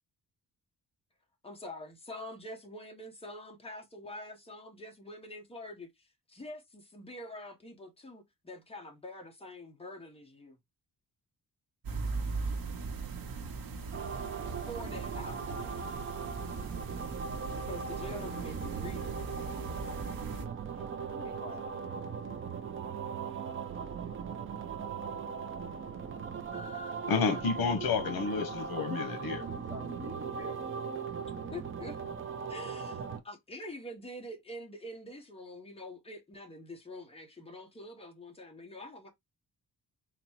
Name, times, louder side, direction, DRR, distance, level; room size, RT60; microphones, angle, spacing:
voice 1, 1.4-10.6 14.7-15.8 17.5-19.2 20.7-21.9 31.5-32.0 32.5-39.1, left 1 dB, 15° left, 0.8 m, -46 dB
sound 1, 11.8-20.5, right 4 dB, 65° right, 0.9 m, -39 dB
sound 2, 13.9-33.2, right 6 dB, 35° right, 0.5 m, -39 dB
voice 2, 26.5-27.4 27.7-28.4 29.3-30.6, left 1 dB, 10° right, 1.0 m, -49 dB
voice 3, 27.1-29.4, left 5 dB, 70° left, 1.0 m, -30 dB
3.9 x 2.1 x 4.3 m
wide cardioid pair, 175°, 37 cm